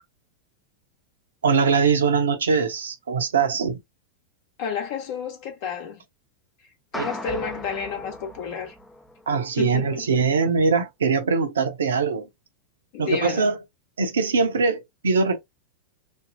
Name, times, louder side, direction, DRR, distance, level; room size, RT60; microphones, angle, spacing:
voice 1, 1.4-3.8 6.9-7.1 9.3-12.3 13.0-13.6 14.0-15.4, right 5 dB, 70° right, 0.7 m, -22 dB
voice 2, 4.6-6.0 6.9-8.7 9.6-10.1 12.9-13.5, left 7 dB, 50° left, 1.0 m, -31 dB
sound 1, 6.9-9.4, left 1 dB, 5° left, 0.4 m, -36 dB
3.4 x 2.0 x 2.5 m
figure-of-eight pair, 90°, 0 cm